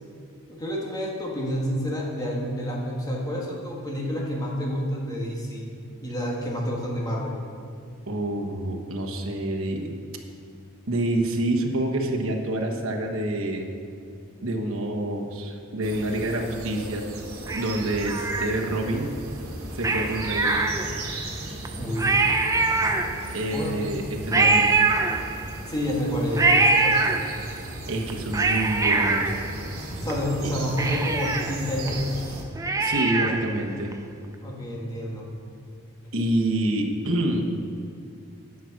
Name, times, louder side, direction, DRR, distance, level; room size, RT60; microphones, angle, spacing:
voice 1, 0.5-5.7 6.0-7.4 21.8-22.2 23.5-23.8 25.6-27.1 30.0-32.1 34.4-35.3, equal, 20° left, -2 dB, 1.6 m, -29 dB
voice 2, 8.1-9.9 10.9-13.7 14.4-17.0 17.5-19.1 19.7-20.6 23.3-24.7 27.9-29.4 30.4-30.5 32.8-34.0 36.1-37.5, right 1 dB, 70° right, 1 dB, 1.2 m, -27 dB
sound 1, 15.8-32.4, right 1 dB, 85° right, 1.6 m, -36 dB
Cat, 17.5-18.9 19.8-21.2 21.6-21.7 22.0-23.5 24.3-25.7 26.4-27.6 28.1-30.1 30.4-30.5 30.8-33.6 33.9-34.0, right 3 dB, 15° right, 0.5 m, -24 dB
10.0 x 6.1 x 5.9 m, 2.4 s
head